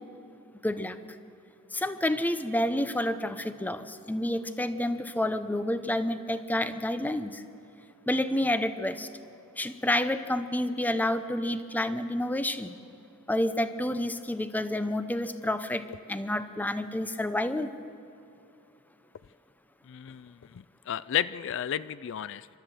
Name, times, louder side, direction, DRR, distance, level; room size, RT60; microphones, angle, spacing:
voice 1, 0.6-1.0 1.7-7.4 8.1-9.1 9.6-12.7 13.3-17.7, left 1 dB, 10° left, 11 dB, 0.7 m, -29 dB
voice 2, 19.9-22.5, left 10 dB, 65° left, 17 dB, 0.4 m, -33 dB
29.5 x 13.0 x 7.7 m, 2.7 s
head